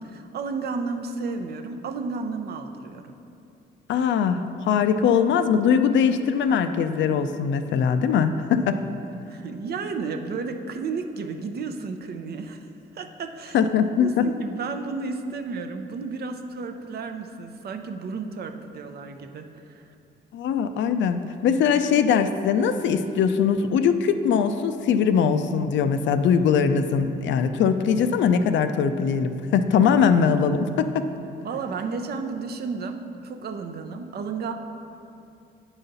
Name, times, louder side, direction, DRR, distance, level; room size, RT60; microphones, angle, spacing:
voice 1, 0.0-3.1 9.3-12.7 12.9-13.6 14.0-19.9 31.4-34.5, right 4 dB, 55° right, 6 dB, 0.6 m, -32 dB
voice 2, 3.9-8.8 13.5-14.3 20.3-31.1, left 6 dB, 70° left, 9 dB, 0.4 m, -21 dB
8.9 x 4.0 x 3.9 m, 2.6 s
cardioid pair, 90°, 20 cm